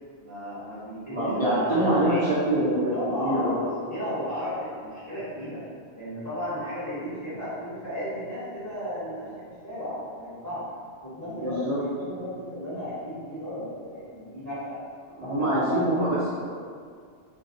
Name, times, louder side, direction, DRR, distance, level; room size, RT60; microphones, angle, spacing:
voice 1, 0.2-2.3 2.9-5.6 5.9-10.6 11.0-14.8 15.4-16.0, equal, 15° left, -14 dB, 0.9 m, -34 dB
voice 2, 1.1-3.6 11.2-11.8 15.2-16.3, right 1 dB, 45° right, -11 dB, 0.4 m, -25 dB
2.4 x 2.0 x 2.5 m, 2.1 s
omnidirectional pair, 1.2 m